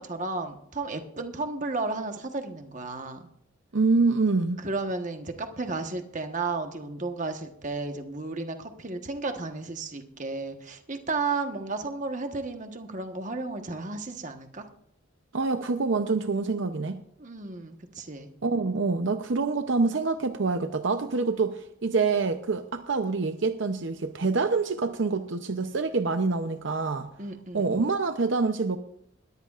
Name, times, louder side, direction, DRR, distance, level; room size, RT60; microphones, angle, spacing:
voice 1, 0.0-3.3 4.6-14.7 17.2-18.3 27.2-27.7, right 3 dB, 35° right, 1.2 m, -33 dB
voice 2, 3.7-4.6 15.3-17.0 18.4-27.1 27.5-28.8, right 4 dB, 60° right, 0.7 m, -26 dB
20.0 x 14.0 x 2.5 m
head